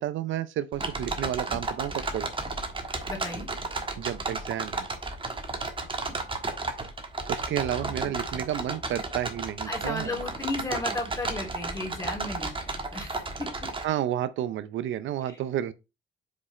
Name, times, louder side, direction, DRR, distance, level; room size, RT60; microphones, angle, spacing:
voice 1, 0.0-2.3 4.0-4.9 7.3-10.1 13.8-15.7, right 11 dB, 75° right, 0.6 m, -31 dB
sound 1, 0.7-13.8, right 3 dB, 25° right, 1.4 m, -33 dB
voice 2, 3.1-3.5 7.8-8.1 9.7-13.5, left 2 dB, 15° left, 3.3 m, -34 dB
5.3 x 4.7 x 4.2 m
cardioid pair, 90°, 20 cm